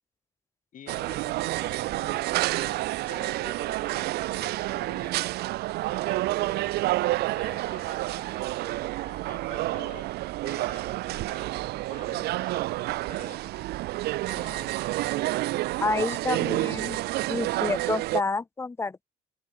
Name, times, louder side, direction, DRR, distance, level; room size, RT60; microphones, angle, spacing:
voice 1, 0.7-5.3 5.9-6.9 7.3-10.1 10.4-11.6 11.9-12.7 13.1-13.7 14.3-14.7, left 9 dB, 50° left, 6.8 m, -49 dB
sound 1, 0.9-18.2, right 18 dB, 70° right, 0.5 m, -29 dB
voice 2, 15.8-17.0 17.3-19.0, left 3 dB, 15° left, 0.6 m, -29 dB
open air
cardioid pair, 110°, 17 cm